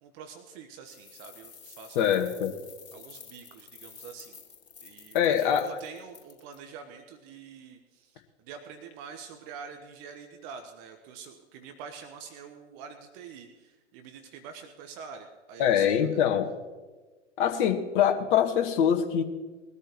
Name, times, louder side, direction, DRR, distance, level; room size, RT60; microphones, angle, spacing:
voice 1, 0.0-2.1 2.9-4.4 4.8-16.1, right 6 dB, 35° right, 6 dB, 1.2 m, -46 dB
sound 1, 0.8-6.5, left 6 dB, 65° left, 2.6 m, -50 dB
voice 2, 1.9-2.5 5.1-5.8 15.6-16.5 17.4-19.2, left 9 dB, 45° left, 5 dB, 1.6 m, -24 dB
21.5 x 13.0 x 3.1 m, 1.3 s
figure-of-eight pair, 100°, 35 cm